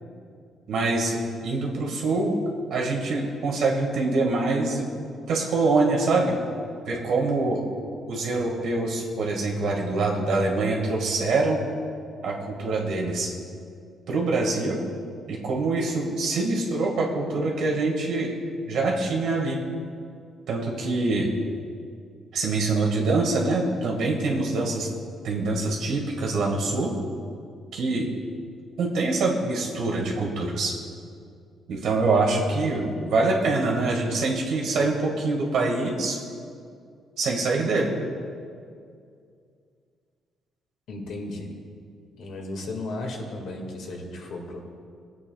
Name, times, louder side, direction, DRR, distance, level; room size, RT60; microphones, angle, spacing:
voice 1, 0.7-1.1 1.4-2.4 2.7-4.9 5.3-6.4 6.9-7.6 8.1-11.6 12.2-13.3 14.1-14.8 15.3-18.3 18.7-19.6 20.5-21.3 22.3-24.9 25.2-26.9 27.7-28.1 28.8-30.7 31.7-36.2 37.2-38.0, right 3 dB, 75° right, -1 dB, 1.8 m, -24 dB
voice 2, 40.9-41.5 42.2-44.6, left 2 dB, 75° left, 1 dB, 1.9 m, -35 dB
19.5 x 8.3 x 2.3 m, 2.3 s
cardioid pair, 90°, 0 cm